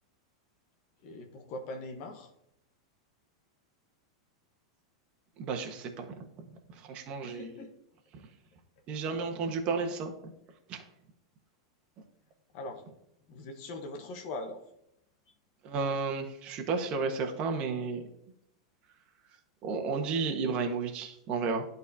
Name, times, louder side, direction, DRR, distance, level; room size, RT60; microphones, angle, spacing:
voice 1, 1.0-2.3 7.2-7.7 12.5-12.9 13.3-14.6, left 2 dB, 50° left, 4 dB, 1.0 m, -41 dB
voice 2, 5.4-6.1 6.8-7.5 8.9-10.3 10.7-10.8 15.6-18.0 19.6-21.6, right 4 dB, 45° right, 3 dB, 1.3 m, -32 dB
11.5 x 4.1 x 2.7 m, 0.78 s
hypercardioid pair, 95°, 3 cm